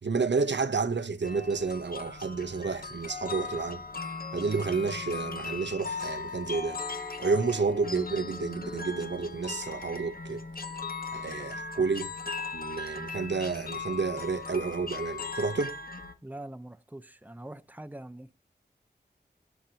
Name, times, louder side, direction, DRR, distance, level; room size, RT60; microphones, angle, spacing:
voice 1, 0.0-3.8 4.3-6.8 7.2-10.4 11.1-12.1 12.5-15.8, right 4 dB, 85° right, 0.9 m, -30 dB
sound 1, 1.2-16.1, left 4 dB, 55° left, 1.5 m, -38 dB
voice 2, 16.2-18.3, right 1 dB, 10° right, 0.8 m, -43 dB
17.5 x 8.3 x 2.9 m
wide cardioid pair, 50°, 18 cm